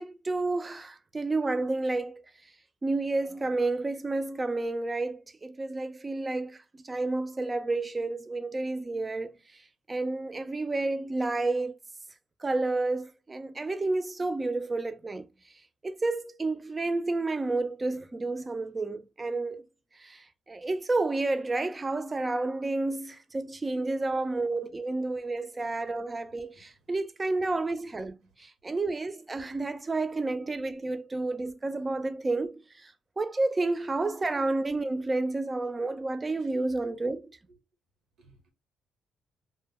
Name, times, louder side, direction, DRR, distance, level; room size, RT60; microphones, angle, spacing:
voice 1, 0.0-2.2 2.8-6.6 6.8-9.3 9.9-11.7 12.4-15.2 15.8-19.6 20.5-28.2 28.6-32.6 33.2-37.2, right 2 dB, 25° right, 0.4 m, -30 dB
voice 2, 38.2-38.5, right 2 dB, 75° right, 0.9 m, -56 dB
2.1 x 2.0 x 3.5 m
cardioid pair, 90°, 0 cm